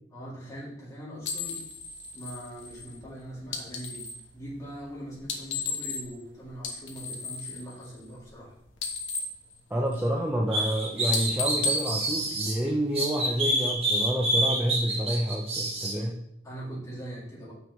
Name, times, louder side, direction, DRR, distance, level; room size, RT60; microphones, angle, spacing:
voice 1, 0.1-1.6 2.1-4.1 4.3-8.5 16.4-17.5, right 1 dB, 15° left, -8 dB, 2.5 m, -41 dB
sound 1, 1.2-4.3 5.2-6.3 6.5-8.4 8.7-10.3 10.6-10.8 11.1-12.9, left 4 dB, 60° left, 1.0 m, -35 dB
voice 2, 9.7-16.2, equal, 10° right, -2 dB, 0.5 m, -29 dB
sound 2, 10.5-12.5 12.9-15.9, right 1 dB, 30° right, 1.2 m, -27 dB
6.8 x 6.0 x 3.1 m, 0.75 s
head